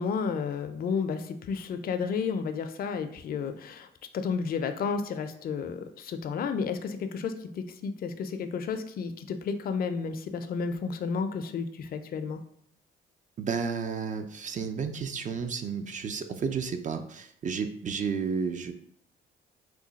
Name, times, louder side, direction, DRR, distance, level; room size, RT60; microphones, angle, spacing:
voice 1, 0.0-3.9 4.1-12.4, left 5 dB, 50° left, 8 dB, 0.4 m, -32 dB
voice 2, 13.4-18.7, right 6 dB, 40° right, 8 dB, 0.4 m, -32 dB
3.1 x 2.2 x 3.9 m, 0.70 s
cardioid pair, 90°, 20 cm